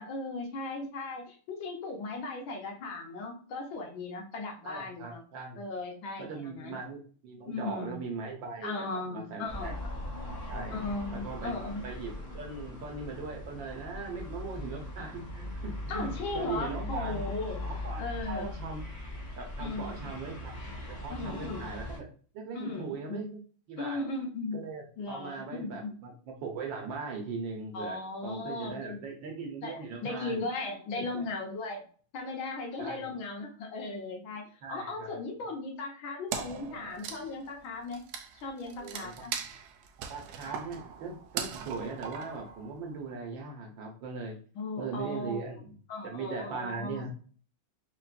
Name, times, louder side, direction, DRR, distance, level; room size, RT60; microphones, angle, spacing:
voice 1, 0.0-5.2 5.6-6.8 7.4-8.0 8.6-9.8 10.7-11.8 15.9-17.6 18.0-18.5 19.6-20.1 21.1-21.7 22.5-23.3 23.8-24.6 25.0-26.0 27.7-29.0 29.6-31.8 32.1-38.0 38.3-39.3 44.5-45.5 45.9-47.1, left 3 dB, 75° left, 1 dB, 1.6 m, -37 dB
voice 2, 4.6-5.6 6.2-9.7 10.5-10.8 11.1-11.6 11.8-16.1 16.3-17.2 17.6-18.8 19.4-20.5 20.8-22.0 22.3-23.4 23.7-24.0 24.5-30.5 31.0-31.2 32.8-33.1 34.6-35.2 38.6-39.3 40.1-44.3 44.8-45.7 46.0-47.1, right 4 dB, 70° right, 2 dB, 1.6 m, -39 dB
sound 1, 9.5-22.0, left 1 dB, 60° left, 0.4 m, -40 dB
Wood, 36.3-43.0, right 7 dB, 90° right, 0.8 m, -40 dB
4.7 x 3.0 x 2.5 m, 0.42 s
omnidirectional pair, 2.2 m